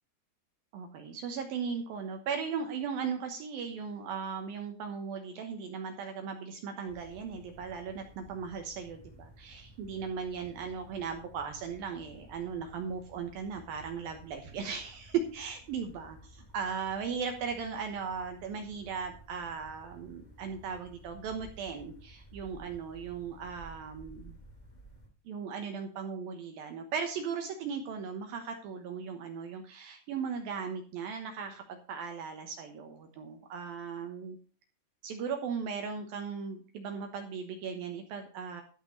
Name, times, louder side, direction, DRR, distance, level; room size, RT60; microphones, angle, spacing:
voice 1, 0.7-24.4 25.3-34.4 35.0-38.6, right 6 dB, 75° right, 5 dB, 2.2 m, -37 dB
sound 1, 6.9-25.1, right 1 dB, 50° left, 0.5 m, -54 dB
13.0 x 5.9 x 6.2 m, 0.39 s
omnidirectional pair, 5.7 m